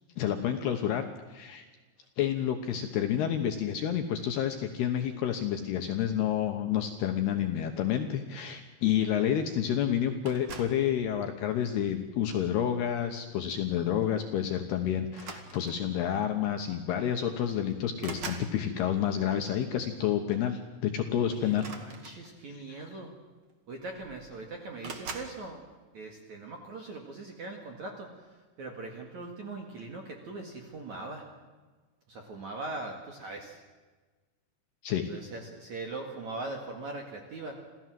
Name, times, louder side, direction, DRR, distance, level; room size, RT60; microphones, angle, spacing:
voice 1, 0.2-1.7 2.2-21.7 22.7-22.9 34.8-35.1, left 9 dB, 70° left, 5 dB, 2.6 m, -29 dB
sound 1, 10.2-10.9 11.7-12.1 13.6-13.7 14.0-14.2 15.1-15.9 17.0-17.1 17.4-18.5 21.5-22.6 23.5-23.6 23.8-24.3 24.8-25.4, right 4 dB, 75° right, 1.2 m, -43 dB
voice 2, 21.2-23.1 23.7-25.6 25.9-31.3 32.1-33.6 35.0-37.6, right 2 dB, 55° right, 2 dB, 2.3 m, -41 dB
27.0 x 16.0 x 7.7 m, 1.3 s
omnidirectional pair, 5.9 m